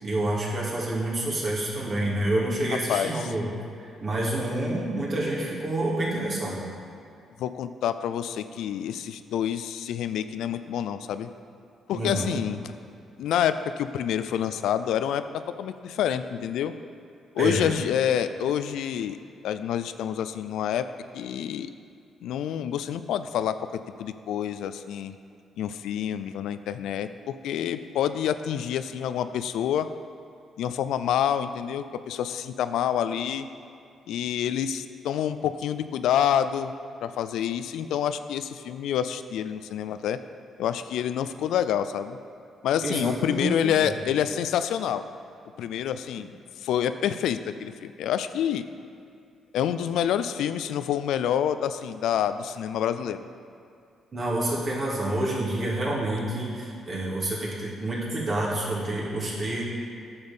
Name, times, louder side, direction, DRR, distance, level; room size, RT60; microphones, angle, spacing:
voice 1, 0.0-3.5 4.0-6.7 11.9-12.4 17.4-17.7 42.8-43.9 54.1-59.6, right 1 dB, 45° right, -5 dB, 2.7 m, -28 dB
voice 2, 7.4-11.3 11.9-12.6 13.2-15.2 15.6-16.7 17.3-19.2 19.4-20.8 21.1-21.7 22.2-23.6 24.0-25.2 25.6-29.9 30.6-33.5 34.1-36.7 37.0-40.2 40.6-42.2 42.6-45.0 45.6-46.3 46.6-48.6 49.5-53.2, left 9 dB, 80° left, 11 dB, 0.4 m, -27 dB
9.5 x 7.0 x 5.5 m, 2.4 s
cardioid pair, 90°, 0 cm